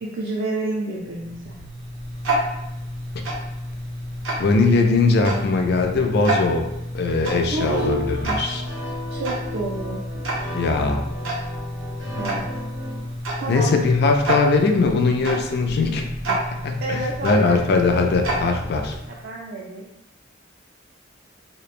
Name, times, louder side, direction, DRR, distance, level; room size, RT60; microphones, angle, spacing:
voice 1, 0.0-1.6 7.5-8.2 9.1-10.0 12.1-12.4 13.4-13.7 16.8-17.7 19.2-19.9, right 2 dB, 55° right, -2 dB, 0.3 m, -29 dB
Tick-tock, 1.0-19.3, right 1 dB, 85° right, 0.7 m, -30 dB
voice 2, 4.4-6.7 6.9-8.6 10.5-11.1 13.5-18.9, left 3 dB, 55° left, 3 dB, 0.3 m, -20 dB
sound 1, 7.7-13.0, left 1 dB, 70° left, 1.0 m, -36 dB
3.0 x 2.0 x 2.4 m, 0.88 s
head